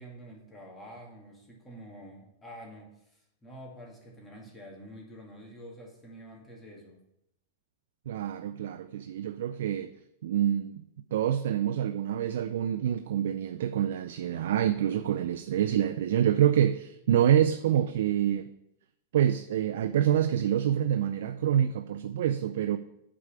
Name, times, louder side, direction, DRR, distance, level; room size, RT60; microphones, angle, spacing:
voice 1, 0.0-7.0, equal, 15° left, 2.4 m, -48 dB
voice 2, 8.1-9.9 10.2-10.8 11.1-18.5 19.1-22.8, right 10 dB, 75° right, 0.4 m, -26 dB
8.5 x 4.8 x 6.8 m
supercardioid pair, 140°, 0 cm